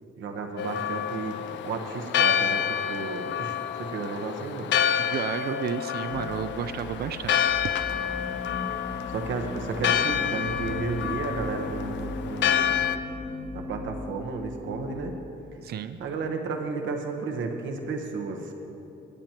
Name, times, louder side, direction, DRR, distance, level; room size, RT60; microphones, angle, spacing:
voice 1, 0.2-1.4 1.6-4.7 9.1-12.7 13.5-15.2 16.0-18.5, right 4 dB, 75° right, 4 dB, 1.1 m, -33 dB
Church bell, 0.6-13.0, left 9 dB, 65° left, 0.5 m, -28 dB
voice 2, 5.0-7.5 15.6-16.0, right 8 dB, 55° right, 11 dB, 0.5 m, -32 dB
sound 1, 6.1-15.2, left 2 dB, 40° left, 1.1 m, -37 dB
18.5 x 8.8 x 3.0 m, 2.8 s
cardioid pair, 90°, 20 cm